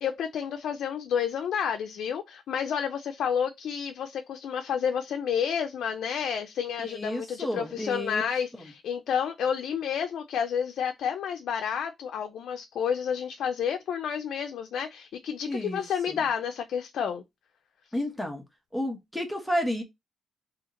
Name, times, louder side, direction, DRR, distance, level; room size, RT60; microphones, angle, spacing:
voice 1, 0.0-17.2, left 7 dB, 75° left, 0.4 m, -30 dB
voice 2, 6.8-8.2 8.5-8.7 15.5-16.2 17.9-18.4 18.7-19.8, equal, 5° left, 1.0 m, -31 dB
2.8 x 2.8 x 3.7 m
cardioid pair, 110°, 0 cm